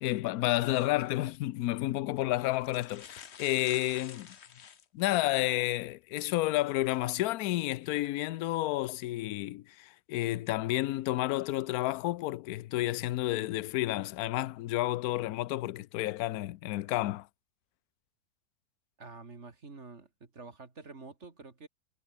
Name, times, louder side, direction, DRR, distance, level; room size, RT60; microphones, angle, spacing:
voice 1, 0.0-4.3 4.9-17.3, left 16 dB, 70° left, 1.0 m, -31 dB
sound 1, 1.2-1.4 2.2-2.3 2.5-5.3 5.9-6.0 7.8-8.1 8.7-8.9, left 8 dB, 45° left, 1.1 m, -50 dB
voice 2, 19.0-21.7, right 4 dB, 40° right, 2.6 m, -48 dB
omnidirectional pair, 1.9 m